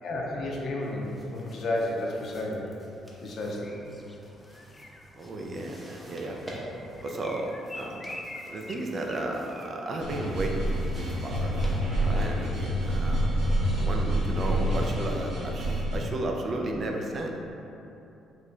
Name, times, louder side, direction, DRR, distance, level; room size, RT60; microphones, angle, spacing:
voice 1, 0.0-2.8 3.2-3.7, left 1 dB, 60° left, -2 dB, 0.6 m, -32 dB
sound 1, 0.8-12.9, equal, 5° right, 0.8 m, -49 dB
sound 2, 3.6-9.7, left 1 dB, 20° left, 0.3 m, -46 dB
voice 2, 5.1-6.5 7.0-8.1 8.5-11.5 12.0-17.4, right 1 dB, 50° right, 1 dB, 0.4 m, -34 dB
sound 3, 10.0-16.0, right 1 dB, 70° right, 0.8 m, -27 dB
3.1 x 2.2 x 4.1 m, 2.8 s
supercardioid pair, 70°, 0 cm